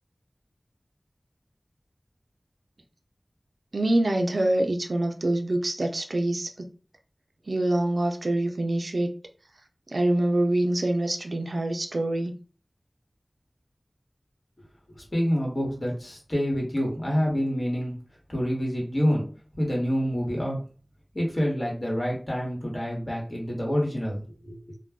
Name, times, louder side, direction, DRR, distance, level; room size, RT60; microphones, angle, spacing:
voice 1, 3.7-6.7 7.5-9.1 9.9-12.4, right 1 dB, 80° right, 4 dB, 0.3 m, -25 dB
voice 2, 14.9-17.9 18.3-19.2 19.6-20.6 21.1-24.6, equal, 55° left, -2 dB, 1.1 m, -27 dB
2.2 x 2.1 x 3.4 m, 0.38 s
wide cardioid pair, 40°, 0 cm